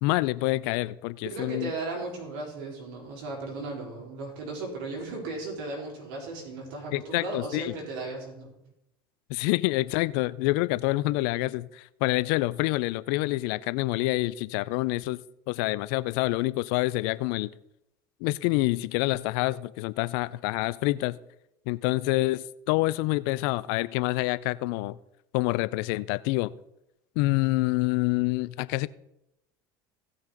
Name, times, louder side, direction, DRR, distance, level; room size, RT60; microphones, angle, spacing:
voice 1, 0.0-1.7 6.9-7.7 9.3-15.2 15.5-17.5 18.2-21.2 21.7-25.0 25.3-26.5 27.2-28.9, left 19 dB, 70° left, 0.4 m, -27 dB
voice 2, 1.2-8.5, right 2 dB, 75° right, 4.1 m, -36 dB
17.0 x 6.2 x 3.8 m
hypercardioid pair, 80°, 12 cm